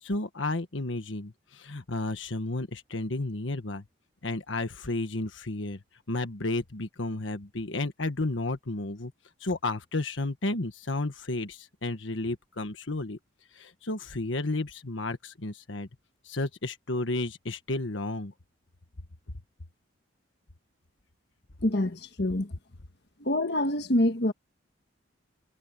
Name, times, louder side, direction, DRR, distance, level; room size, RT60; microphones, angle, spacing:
voice 1, 0.0-3.8 4.2-5.8 6.1-9.1 9.4-13.2 13.5-15.9 16.2-18.3, left 2 dB, 80° left, 1.5 m, -32 dB
voice 2, 21.6-22.5 23.2-24.3, left 1 dB, 60° left, 1.6 m, -26 dB
head